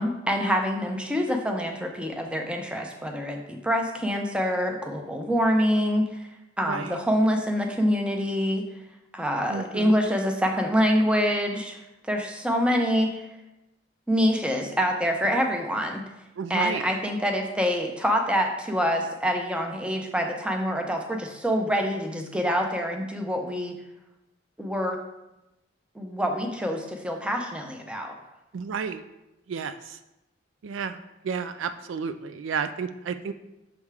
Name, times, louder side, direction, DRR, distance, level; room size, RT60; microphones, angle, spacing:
voice 1, 0.0-6.2 6.6-8.6 9.1-11.8 12.1-13.1 14.1-16.0 16.5-23.8 24.6-25.0 26.0-28.1, equal, 5° right, 2 dB, 0.6 m, -26 dB
voice 2, 6.7-7.0 9.5-10.0 16.4-16.9 28.5-29.0 29.5-29.8 30.6-33.3, right 6 dB, 75° right, 10 dB, 0.4 m, -31 dB
6.5 x 3.5 x 4.7 m, 0.94 s
head